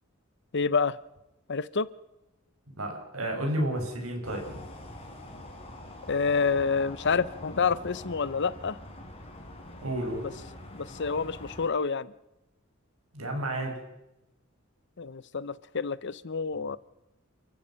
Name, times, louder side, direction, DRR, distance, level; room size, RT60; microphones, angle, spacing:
voice 1, 0.5-1.0 1.5-1.9 6.1-8.8 10.7-12.1 15.0-16.8, left 5 dB, 55° left, 0.8 m, -28 dB
voice 2, 2.8-4.6 9.8-10.2 13.1-13.8, right 1 dB, 90° right, 6.1 m, -31 dB
sound 1, 4.2-11.7, left 1 dB, 30° left, 4.0 m, -44 dB
29.0 x 15.5 x 5.8 m
head